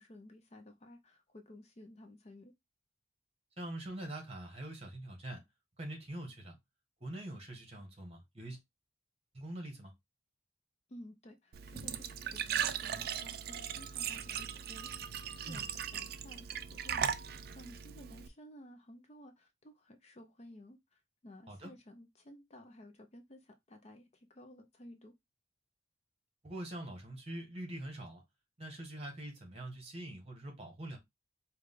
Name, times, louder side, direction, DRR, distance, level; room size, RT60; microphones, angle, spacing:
voice 1, 0.0-2.5 10.9-25.1, left 1 dB, 35° left, 0.6 m, -55 dB
voice 2, 3.6-5.4 5.8-6.6 7.0-8.6 9.3-9.9 15.4-15.7 21.5-21.7 26.4-28.2 28.6-31.0, right 1 dB, 30° right, 1.5 m, -44 dB
Glass / Trickle dribble / Fill (with liquid), 11.5-18.3, right 8 dB, 50° right, 0.4 m, -38 dB
4.8 x 2.4 x 3.7 m
head